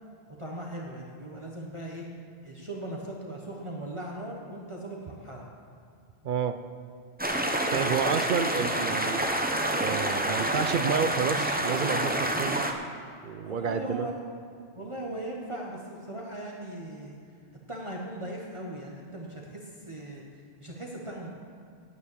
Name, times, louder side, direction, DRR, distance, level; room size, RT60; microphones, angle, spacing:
voice 1, 0.4-2.0 2.4-5.5 13.4-14.2 14.7-17.2 17.7-20.2 20.6-21.3, right 1 dB, 30° right, -2 dB, 1.2 m, -38 dB
voice 2, 6.2-6.6 7.7-9.2 9.8-12.7 13.2-14.1, right 6 dB, 60° right, 10 dB, 0.7 m, -30 dB
sound 1, 7.2-12.7, right 1 dB, 10° right, 0.7 m, -28 dB
9.4 x 8.8 x 8.4 m, 2.3 s
omnidirectional pair, 1.1 m